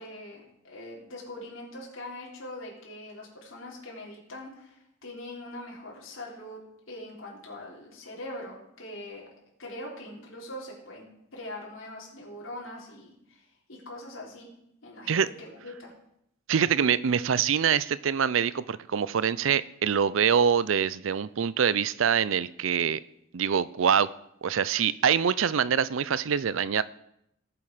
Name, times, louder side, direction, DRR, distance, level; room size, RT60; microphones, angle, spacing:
voice 1, 0.0-6.6 6.9-9.2 9.6-11.1 11.3-13.4 13.7-14.5 14.8-15.9, left 1 dB, 85° left, -3 dB, 3.3 m, -42 dB
voice 2, 16.5-23.0 23.3-24.1 24.4-26.8, right 7 dB, 75° right, 18 dB, 0.5 m, -25 dB
18.0 x 7.2 x 5.0 m, 0.78 s
head